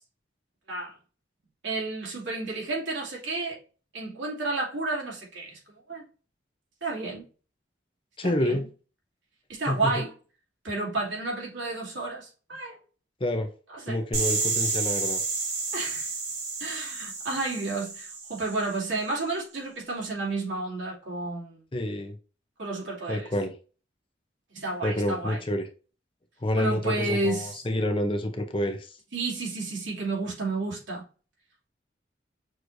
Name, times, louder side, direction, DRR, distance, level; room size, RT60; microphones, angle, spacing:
voice 1, 1.6-3.6 3.9-5.6 5.9-6.1 6.8-7.2 8.2-8.6 9.5-10.1 10.6-12.8 13.7-14.0 15.7-16.1 16.6-21.6 22.6-23.3 24.5-25.4 26.5-27.6 29.1-31.0, right 2 dB, 85° right, 2.4 m, -31 dB
voice 2, 8.2-8.7 9.7-9.9 13.2-13.5 13.9-15.2 21.7-22.2 23.1-23.5 24.8-25.7 26.4-28.9, left 1 dB, 30° left, 0.6 m, -28 dB
sound 1, 14.1-18.9, right 4 dB, 50° right, 2.6 m, -30 dB
6.2 x 3.1 x 2.6 m
head